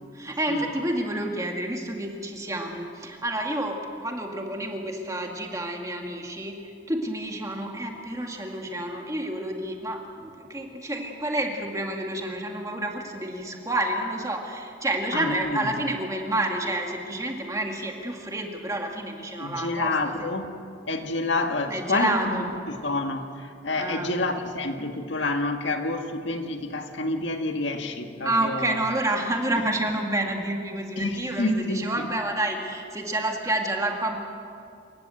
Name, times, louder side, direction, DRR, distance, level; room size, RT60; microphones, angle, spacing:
voice 1, 0.1-6.6 6.9-19.9 20.2-20.3 21.7-22.5 23.8-24.1 28.2-34.2, right 1 dB, 15° right, 2 dB, 2.0 m, -29 dB
voice 2, 15.1-15.7 19.4-20.6 20.9-28.8 31.0-32.1, left 2 dB, 75° left, 5 dB, 1.7 m, -28 dB
27.5 x 15.5 x 7.9 m, 2.5 s
head